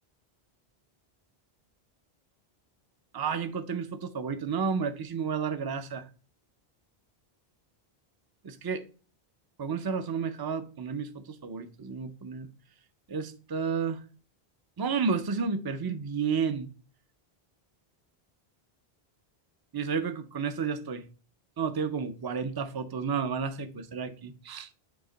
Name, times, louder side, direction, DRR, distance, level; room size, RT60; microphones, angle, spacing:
voice 1, 3.1-6.1 8.4-8.8 9.6-12.5 13.1-14.0 14.8-16.7 19.7-21.0 21.6-24.7, right 6 dB, 30° right, 0.4 m, -31 dB
7.0 x 2.9 x 5.0 m
omnidirectional pair, 1.0 m